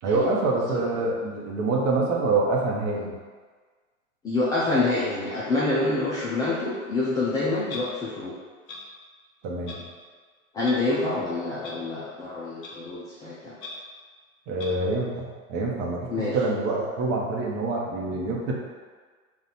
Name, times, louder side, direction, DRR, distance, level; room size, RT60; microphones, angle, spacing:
voice 1, 0.0-3.1 9.4-9.8 14.5-18.5, right 3 dB, 40° right, -2 dB, 0.9 m, -26 dB
voice 2, 4.2-8.3 10.5-13.6 16.1-16.4, left 2 dB, 10° left, -9 dB, 0.3 m, -27 dB
Clock, 7.7-7.8 8.7-8.8 9.7-9.8 10.6-10.7 11.6-11.7 12.6-12.7 13.6-13.7 14.6-14.7, left 3 dB, 45° left, 0.9 m, -38 dB
4.1 x 2.4 x 4.0 m, 1.5 s
hypercardioid pair, 105°, 41 cm